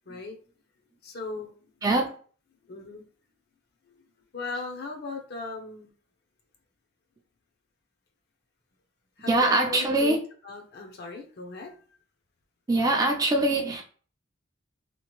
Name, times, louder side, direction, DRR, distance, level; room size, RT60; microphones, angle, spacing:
voice 1, 0.1-0.4 1.0-1.5 2.6-3.0 3.9-4.0 4.3-5.9 9.2-11.8, left 3 dB, 55° left, 0.6 m, -38 dB
voice 2, 9.3-10.2 12.7-13.8, right 2 dB, 20° right, 0.4 m, -23 dB
2.9 x 2.5 x 2.9 m
head